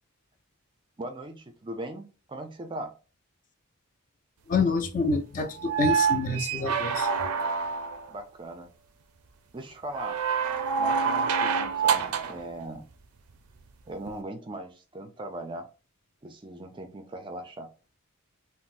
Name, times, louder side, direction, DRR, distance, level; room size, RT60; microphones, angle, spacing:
voice 1, 1.0-2.9 8.1-8.7 9.5-10.2 10.8-12.8 13.9-15.7 16.2-17.7, right 1 dB, 20° right, 0.4 m, -39 dB
voice 2, 4.5-7.1, left 3 dB, 35° left, 0.4 m, -27 dB
sound 1, 5.6-8.1 9.9-12.4 14.1-14.2, right 6 dB, 85° right, 0.5 m, -27 dB
3.9 x 2.0 x 2.5 m
head